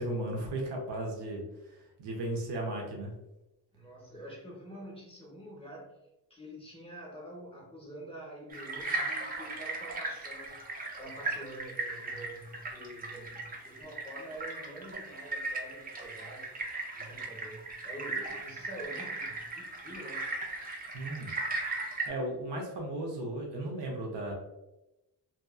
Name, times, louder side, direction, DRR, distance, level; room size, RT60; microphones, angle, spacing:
voice 1, 0.0-3.1 20.9-21.3 21.8-24.3, right 1 dB, 80° right, 0 dB, 0.7 m, -36 dB
voice 2, 3.7-5.9 6.3-10.6 11.0-16.5 17.0-20.3, right 1 dB, 15° left, -4 dB, 0.6 m, -46 dB
sound 1, 8.5-22.1, right 3 dB, 25° right, 0.4 m, -37 dB
2.8 x 2.3 x 2.2 m, 0.95 s
wide cardioid pair, 145°, 41 cm